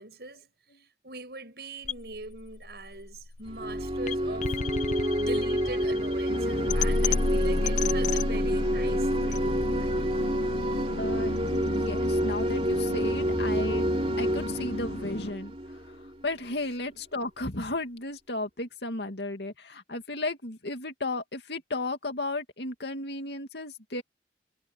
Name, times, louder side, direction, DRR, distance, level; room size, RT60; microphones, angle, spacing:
voice 1, 0.0-4.6 4.9-9.9 16.5-16.6, right 2 dB, 60° right, 6.9 m, -42 dB
sound 1, 1.8-13.9, left 3 dB, 40° left, 0.6 m, -32 dB
sound 2, 3.5-16.1, equal, 35° right, 3.6 m, -28 dB
sound 3, 6.3-15.3, left 1 dB, 85° left, 2.3 m, -37 dB
voice 2, 11.0-11.3 11.6-13.8 14.2-16.0 16.2-24.0, left 2 dB, 70° left, 2.5 m, -34 dB
head